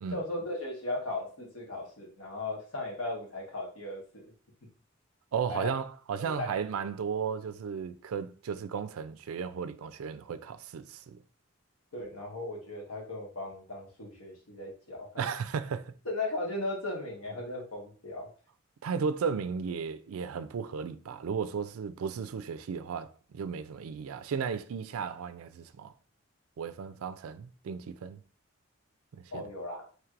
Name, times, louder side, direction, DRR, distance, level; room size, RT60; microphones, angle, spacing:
voice 1, 0.1-4.3 5.5-5.7 6.4-6.5 11.9-15.3 16.0-18.3 29.3-29.9, left 2 dB, 90° left, 1.4 m, -37 dB
voice 2, 5.3-11.2 15.2-15.9 18.8-25.9 26.6-28.2 29.1-29.4, right 6 dB, 85° right, 0.4 m, -35 dB
4.5 x 3.2 x 2.5 m
head